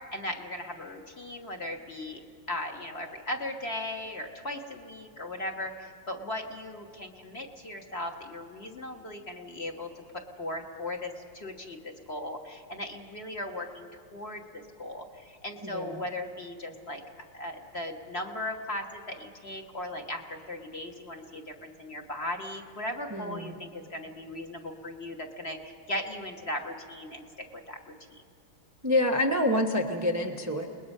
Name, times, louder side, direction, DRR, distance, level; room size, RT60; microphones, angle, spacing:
voice 1, 0.1-2.2 2.5-9.9 10.4-17.0 17.3-27.2 27.5-27.8 28.1-28.2, left 1 dB, 35° left, 2 dB, 1.3 m, -37 dB
voice 2, 15.6-16.0 23.1-23.6 28.8-30.7, left 1 dB, 20° right, 2 dB, 0.4 m, -27 dB
29.0 x 20.5 x 5.5 m, 2.3 s
omnidirectional pair, 2.3 m